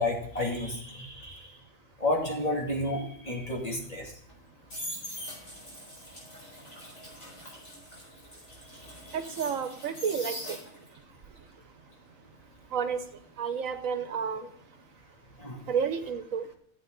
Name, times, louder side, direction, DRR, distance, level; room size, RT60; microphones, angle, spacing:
voice 1, 0.0-1.4 2.0-4.1 15.4-15.6, left 1 dB, 25° left, 2.6 m, -31 dB
sound 1, 4.3-11.0 11.4-14.3 14.5-14.9, equal, 70° left, 5.3 m, -43 dB
voice 2, 9.1-10.6 12.7-13.0 13.4-14.4 15.7-16.4, right 7 dB, 80° right, 1.3 m, -30 dB
14.5 x 8.2 x 3.9 m
omnidirectional pair, 1.4 m